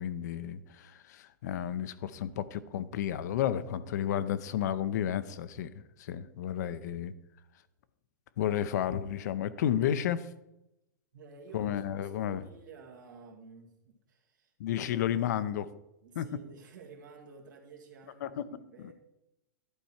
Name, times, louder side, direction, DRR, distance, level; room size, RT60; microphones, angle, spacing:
voice 1, 0.0-7.1 8.4-10.3 11.5-12.4 14.6-15.7 16.2-16.3 18.2-18.4 18.8-18.9, left 10 dB, 65° left, 14 dB, 0.6 m, -32 dB
voice 2, 6.6-7.0 11.1-15.2 16.0-18.9, right 4 dB, 80° right, 0 dB, 2.0 m, -52 dB
11.5 x 4.6 x 4.3 m, 0.88 s
hypercardioid pair, 130°, 10 cm